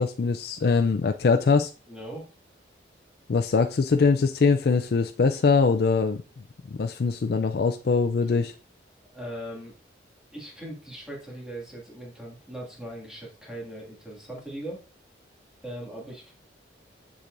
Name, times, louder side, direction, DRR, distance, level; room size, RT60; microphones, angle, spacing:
voice 1, 0.0-1.7 3.3-6.2 6.8-8.5, left 4 dB, 55° left, 6 dB, 0.4 m, -22 dB
voice 2, 1.9-2.3 8.3-8.4 9.1-9.7 10.3-14.8 15.6-16.3, right 1 dB, 5° right, -3 dB, 2.1 m, -39 dB
7.4 x 6.7 x 2.6 m, 0.35 s
head